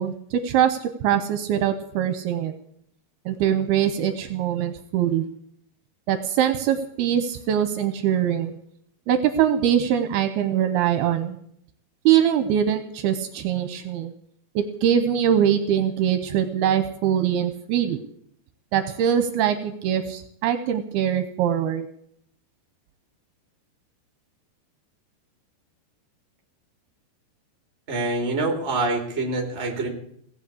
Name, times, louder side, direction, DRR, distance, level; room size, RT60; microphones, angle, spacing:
voice 1, 0.0-2.5 3.3-5.2 6.1-8.6 9.1-11.4 12.1-14.1 14.6-18.0 18.7-21.9, right 9 dB, 75° right, 10 dB, 2.7 m, -23 dB
voice 2, 27.9-29.9, right 2 dB, 20° right, 3 dB, 2.3 m, -25 dB
18.0 x 8.2 x 8.4 m, 0.68 s
omnidirectional pair, 4.8 m